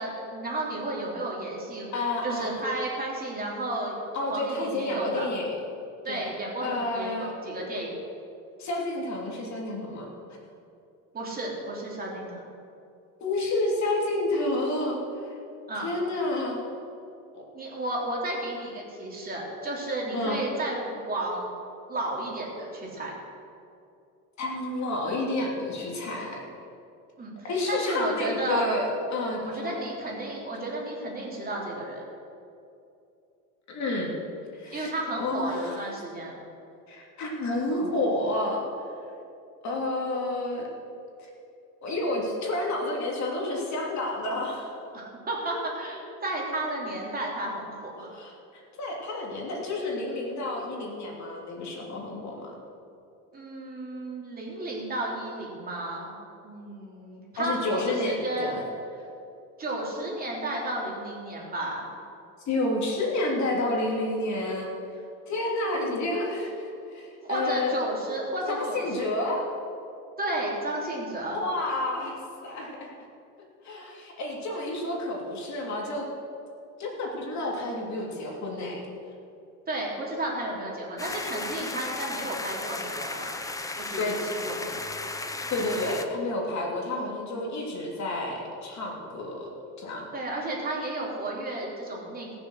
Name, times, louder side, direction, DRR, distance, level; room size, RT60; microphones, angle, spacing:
voice 1, 0.0-4.0 4.3-5.3 6.0-7.9 11.1-12.4 15.7-15.9 17.5-21.4 21.9-23.1 27.2-28.7 29.5-32.0 34.7-36.3 44.9-48.1 53.3-56.1 56.4-58.5 59.6-61.9 67.2-69.1 70.2-71.4 79.7-84.8 90.1-92.4, right 1 dB, 20° right, -3 dB, 3.2 m, -33 dB
voice 2, 1.9-2.5 4.1-5.6 6.1-6.3 6.6-7.3 8.6-10.1 13.2-15.3 15.7-16.6 17.3-17.4 20.1-20.4 24.4-26.4 27.4-29.8 33.7-34.1 34.5-34.9 35.2-35.7 36.9-38.6 39.6-40.7 41.8-44.7 48.1-52.5 57.4-58.6 62.4-64.7 65.3-67.7 68.5-69.4 71.3-72.9 73.6-76.1 76.8-78.8 84.0-84.2 85.5-89.5 89.8-90.1, left 2 dB, 40° left, -1 dB, 2.9 m, -30 dB
sound 1, 81.0-86.0, left 2 dB, 10° left, 0.7 m, -35 dB
18.5 x 7.0 x 6.4 m, 2.6 s
supercardioid pair, 120°, 44 cm